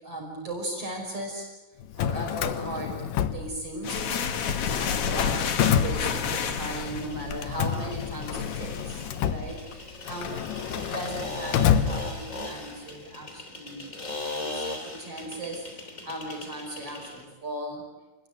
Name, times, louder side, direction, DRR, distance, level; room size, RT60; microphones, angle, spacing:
voice 1, 0.0-1.5 2.0-4.4 4.8-13.9 14.3-17.8, right 1 dB, 45° right, 0 dB, 6.5 m, -37 dB
Drawer open or close, 1.8-4.0 4.3-6.7 7.3-12.6, left 9 dB, 90° left, 2.8 m, -29 dB
sound 1, 3.8-9.1, left 7 dB, 50° left, 2.1 m, -31 dB
sound 2, 6.5-17.3, left 2 dB, 25° left, 3.2 m, -39 dB
29.0 x 20.5 x 9.2 m, 1.2 s
omnidirectional pair, 3.8 m